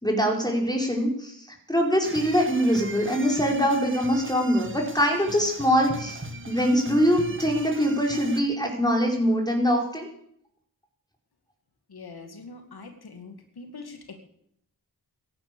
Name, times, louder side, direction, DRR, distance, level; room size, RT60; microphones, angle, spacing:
voice 1, 0.0-1.4 1.7-6.2 6.5-10.1, equal, 10° left, 0 dB, 5.0 m, -23 dB
sound 1, 2.0-8.4, right 2 dB, 30° right, 1.8 m, -39 dB
voice 2, 11.9-14.2, left 3 dB, 75° left, 5 dB, 2.3 m, -43 dB
16.0 x 11.0 x 6.9 m, 0.71 s
cardioid pair, 45°, 38 cm